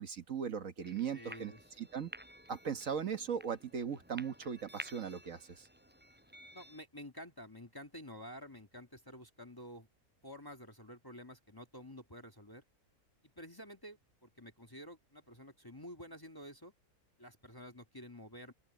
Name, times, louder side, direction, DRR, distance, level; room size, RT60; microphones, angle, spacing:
voice 1, 0.0-1.5 1.8-2.1 2.5-5.7, right 7 dB, 60° right, 1.6 m, -38 dB
sound 1, 0.8-6.8, equal, 5° right, 7.1 m, -52 dB
voice 2, 1.1-1.8 6.5-9.9 10.2-12.6 13.2-16.7 17.2-18.5, equal, 15° left, 1.6 m, -50 dB
open air
omnidirectional pair, 1.5 m